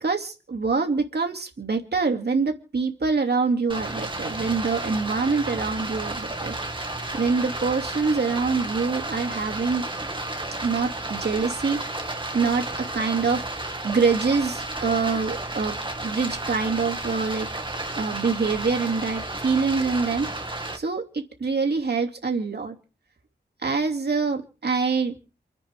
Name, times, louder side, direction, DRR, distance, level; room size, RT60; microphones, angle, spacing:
voice 1, 0.0-6.6 7.1-9.8 10.6-11.8 12.3-13.5 13.8-15.7 16.0-17.5 18.0-20.3 20.7-22.7 23.6-25.2, right 4 dB, 60° right, 3 dB, 2.9 m, -25 dB
Stream, 3.7-20.8, right 2 dB, 25° right, 2.1 m, -32 dB
28.0 x 10.5 x 3.7 m, 0.38 s
wide cardioid pair, 80°, 19 cm